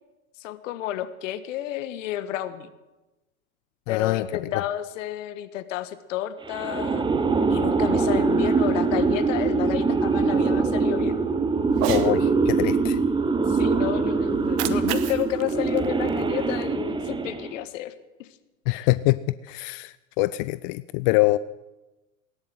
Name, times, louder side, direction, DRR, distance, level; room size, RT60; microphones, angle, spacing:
voice 1, 0.4-2.7 3.9-7.0 7.5-11.2 13.5-17.9 18.2-18.3 18.7-18.9, left 12 dB, 60° left, 12 dB, 1.5 m, -31 dB
voice 2, 3.9-4.3 4.5-4.6 11.9-13.0 18.7-21.4, left 20 dB, 40° left, 16 dB, 0.4 m, -24 dB
sound 1, 6.5-17.6, right 4 dB, 10° right, 1.0 m, -23 dB
Cat, 11.7-12.1 14.3-16.7, right 13 dB, 45° right, 1.2 m, -33 dB
18.0 x 10.5 x 7.8 m, 1.1 s
hypercardioid pair, 100°, 42 cm